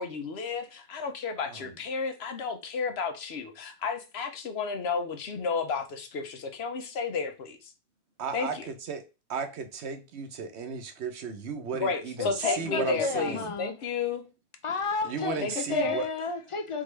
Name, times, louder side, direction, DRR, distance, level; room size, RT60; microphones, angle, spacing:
voice 1, 0.0-7.7 8.3-8.7 11.7-14.3 15.4-16.0, left 5 dB, 75° left, 1.0 m, -32 dB
voice 2, 8.2-8.6 8.9-9.0 9.3-13.4 15.0-16.1, right 5 dB, 80° right, 1.0 m, -34 dB
voice 3, 12.2-13.8 14.6-15.4 15.7-16.8, left 4 dB, 50° left, 0.4 m, -32 dB
3.7 x 3.7 x 3.2 m
omnidirectional pair, 1.1 m